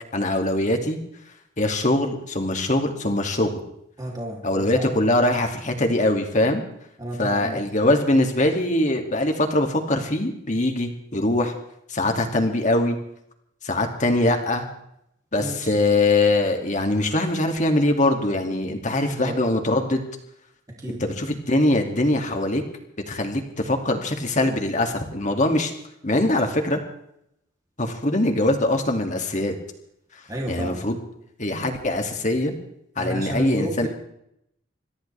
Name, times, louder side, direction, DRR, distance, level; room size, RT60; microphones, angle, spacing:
voice 1, 0.1-1.0 1.6-3.5 4.4-6.6 7.2-11.5 11.9-13.0 13.6-14.7 15.3-20.0 20.9-22.6 23.1-25.7 26.0-26.8 27.8-29.5 30.5-31.0 31.4-32.5 33.0-33.9, left 1 dB, 40° left, 4 dB, 2.4 m, -22 dB
voice 2, 4.0-4.9 7.0-8.0 15.4-15.7 19.1-19.4 20.8-21.0 30.3-30.8 33.0-33.9, right 1 dB, 20° right, -2 dB, 3.1 m, -32 dB
27.5 x 14.0 x 3.5 m, 0.76 s
head